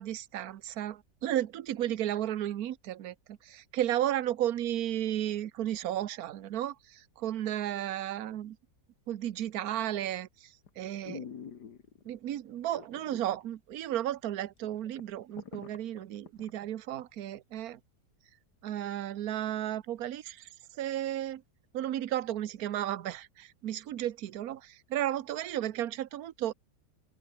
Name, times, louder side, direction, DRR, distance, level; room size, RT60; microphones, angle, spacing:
voice 1, 0.0-8.6 9.1-10.3 10.8-11.3 12.1-17.8 18.6-20.5 20.8-21.4 21.7-26.5, right 12 dB, 65° right, 1.3 m, -33 dB
sound 1, 9.9-10.2 10.7-10.8 11.0-12.1 12.7-13.4 13.7-13.8 14.3-14.4 14.6-16.5 16.9-17.0, left 7 dB, 75° left, 2.3 m, -46 dB
open air
omnidirectional pair, 1.8 m